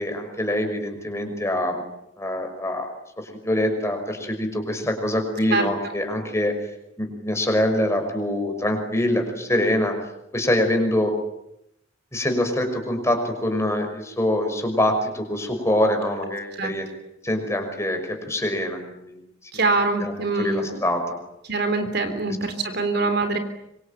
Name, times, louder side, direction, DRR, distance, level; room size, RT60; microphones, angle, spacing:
voice 1, 0.0-1.8 2.2-2.9 3.2-6.5 7.0-9.9 10.3-11.1 12.1-16.9 17.2-19.2 19.5-19.6 20.0-21.0 22.3-22.4, left 1 dB, 15° left, 5 dB, 5.8 m, -24 dB
voice 2, 19.5-20.8 21.5-23.4, right 3 dB, 55° right, 9 dB, 3.7 m, -24 dB
26.0 x 24.5 x 9.1 m, 0.80 s
head